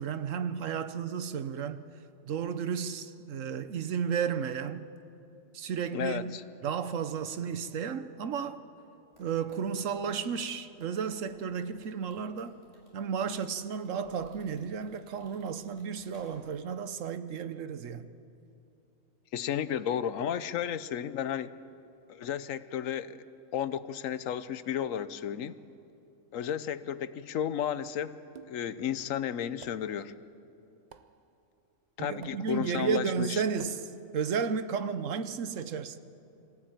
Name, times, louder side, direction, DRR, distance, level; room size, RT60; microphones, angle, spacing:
voice 1, 0.0-1.8 2.2-4.9 5.5-6.3 6.6-8.6 9.2-12.5 12.9-18.1 32.0-33.8 34.1-36.0, right 7 dB, 75° right, 1.2 m, -33 dB
voice 2, 5.9-6.4 19.3-21.5 22.1-23.2 23.5-25.6 26.3-28.2 28.5-30.1 32.0-33.4, left 9 dB, 80° left, 1.1 m, -33 dB
sound 1, 9.1-16.7 17.0-17.2, equal, 30° right, 5.5 m, -62 dB
sound 2, 28.3-28.8 29.6-30.0 30.9-31.3 32.2-32.7 33.6-34.1, right 7 dB, 45° right, 0.6 m, -52 dB
24.5 x 15.5 x 9.0 m
omnidirectional pair, 1.4 m